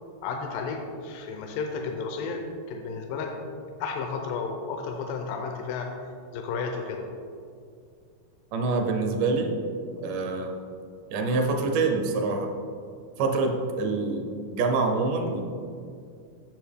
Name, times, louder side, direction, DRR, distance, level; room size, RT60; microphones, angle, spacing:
voice 1, 0.2-2.4 2.7-3.3 3.8-5.9 6.3-7.1, left 5 dB, 85° left, 2 dB, 2.3 m, -32 dB
voice 2, 8.5-9.6 10.0-10.6 11.1-12.5 13.2-15.4, right 3 dB, 75° right, 3 dB, 2.3 m, -26 dB
9.3 x 6.9 x 3.5 m, 2.3 s
omnidirectional pair, 3.9 m